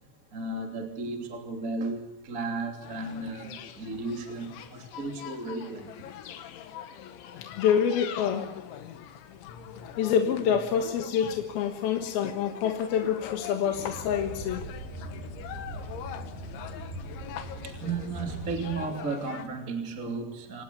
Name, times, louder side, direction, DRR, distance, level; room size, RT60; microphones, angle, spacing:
voice 1, 0.3-5.9 17.6-20.6, right 3 dB, 20° right, 3 dB, 2.6 m, -34 dB
sound 1, 2.8-19.5, left 9 dB, 85° left, 4.0 m, -43 dB
voice 2, 7.4-8.5 10.0-14.6, left 8 dB, 65° left, 4 dB, 3.0 m, -27 dB
sound 2, 13.7-18.9, right 1 dB, 55° right, 5.0 m, -40 dB
28.0 x 18.5 x 7.0 m, 0.90 s
omnidirectional pair, 5.3 m